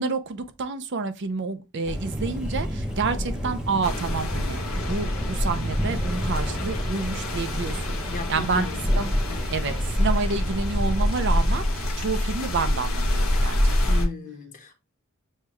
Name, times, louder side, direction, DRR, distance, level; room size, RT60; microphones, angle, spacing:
voice 1, 0.0-4.6 4.9-8.0 8.3-8.7 8.9-9.1 9.5-13.6 13.9-14.0, right 4 dB, 55° right, 0.5 m, -29 dB
Thunder, 1.8-11.9, equal, 5° right, 0.7 m, -32 dB
sound 1, 3.8-14.1, left 1 dB, 70° left, 1.2 m, -26 dB
voice 2, 8.1-9.0 9.3-9.5 13.8-14.7, left 2 dB, 40° left, 0.9 m, -36 dB
6.5 x 2.3 x 3.0 m
head